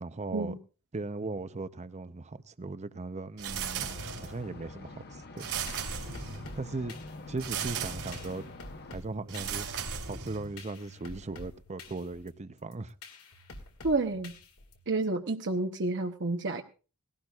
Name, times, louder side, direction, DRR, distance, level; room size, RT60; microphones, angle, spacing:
voice 1, 0.0-0.6 0.9-5.5 6.6-6.9 7.3-8.4 8.9-9.7 10.1-12.9, right 3 dB, 30° right, 0.6 m, -38 dB
sound 1, 3.4-4.5 5.4-6.6 7.4-8.4 9.3-10.6, right 6 dB, 70° right, 3.1 m, -36 dB
sound 2, 3.7-9.0, left 2 dB, 45° left, 1.2 m, -47 dB
sound 3, 5.4-15.0, left 2 dB, 70° left, 2.1 m, -49 dB
voice 2, 13.8-14.3 14.9-16.6, right 3 dB, 55° right, 0.9 m, -29 dB
19.0 x 16.5 x 2.4 m
head